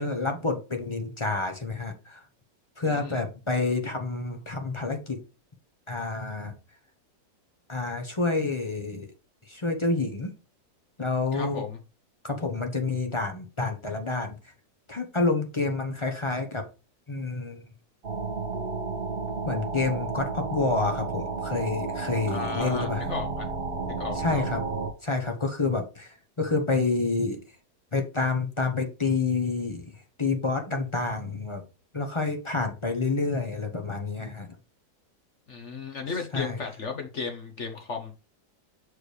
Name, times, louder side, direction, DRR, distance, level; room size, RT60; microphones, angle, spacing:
voice 1, 0.0-2.2 2.8-5.2 5.9-6.5 7.7-9.1 9.5-10.3 11.0-11.7 12.2-14.4 14.9-16.7 17.1-17.6 19.5-23.1 24.2-24.6 25.0-27.4 27.9-29.9 30.2-31.6 31.9-34.5 36.3-36.6, left 3 dB, 25° left, 0.6 m, -28 dB
voice 2, 2.8-3.2 11.3-11.8 22.3-23.5 24.0-24.4 35.5-38.1, left 4 dB, 50° left, 1.0 m, -35 dB
sound 1, 18.0-24.9, right 4 dB, 35° right, 1.4 m, -32 dB
6.5 x 4.8 x 3.2 m
omnidirectional pair, 1.9 m